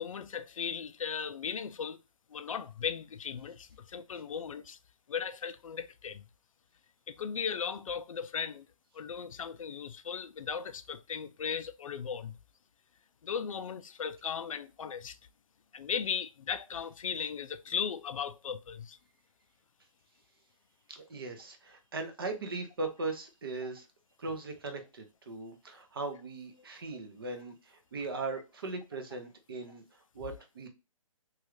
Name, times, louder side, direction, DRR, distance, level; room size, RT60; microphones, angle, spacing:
voice 1, 0.0-2.0 2.3-4.8 5.1-6.3 7.1-8.7 8.9-12.4 13.2-15.2 15.7-19.0, left 7 dB, 70° left, 0.4 m, -37 dB
voice 2, 20.9-23.9 24.2-30.7, right 3 dB, 45° right, 0.7 m, -39 dB
3.1 x 2.4 x 3.0 m
hypercardioid pair, 170°, 17 cm